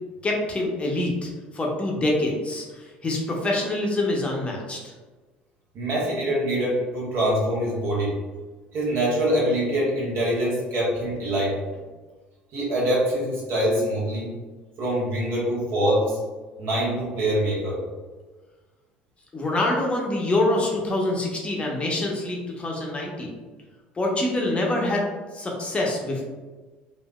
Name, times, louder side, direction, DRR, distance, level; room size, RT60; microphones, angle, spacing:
voice 1, 0.2-4.9 19.3-23.3 24.0-25.0 25.3-26.2, left 2 dB, 25° left, -1 dB, 0.7 m, -25 dB
voice 2, 5.7-8.2 8.7-11.6 12.5-14.3 14.8-16.2 16.6-17.8, right 1 dB, 55° right, -4 dB, 1.2 m, -24 dB
3.4 x 2.5 x 2.2 m, 1.3 s
hypercardioid pair, 60°, 5 cm